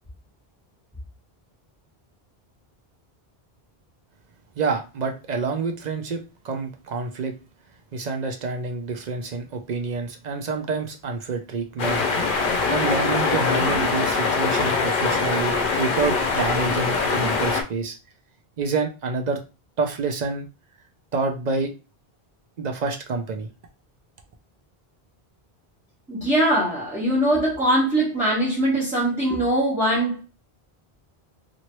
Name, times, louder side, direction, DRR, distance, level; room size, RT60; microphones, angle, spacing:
voice 1, 4.6-7.3 7.9-12.0 12.7-18.0 18.6-19.4 19.8-20.5 21.1-21.7 22.6-23.5, right 4 dB, 55° right, 0.5 m, -27 dB
sound 1, 11.8-17.6, left 4 dB, 60° left, 0.7 m, -23 dB
voice 2, 26.1-30.2, right 1 dB, 10° right, 1.1 m, -21 dB
2.9 x 2.5 x 3.0 m
omnidirectional pair, 1.0 m